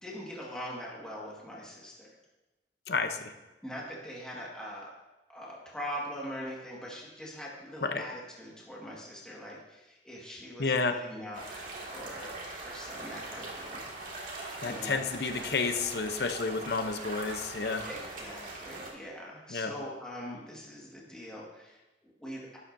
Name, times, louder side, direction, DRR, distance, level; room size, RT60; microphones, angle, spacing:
voice 1, 0.0-2.1 3.6-4.9 5.3-12.3 12.6-13.8 14.2-15.0 17.8-22.6, equal, 5° left, -5 dB, 1.7 m, -42 dB
voice 2, 2.9-3.3 7.8-8.0 10.6-11.0 14.6-17.9 19.5-19.7, left 4 dB, 65° left, 7 dB, 0.7 m, -30 dB
sound 1, 11.3-18.9, right 2 dB, 50° right, 2.0 m, -41 dB
11.5 x 10.0 x 2.7 m, 1.1 s
head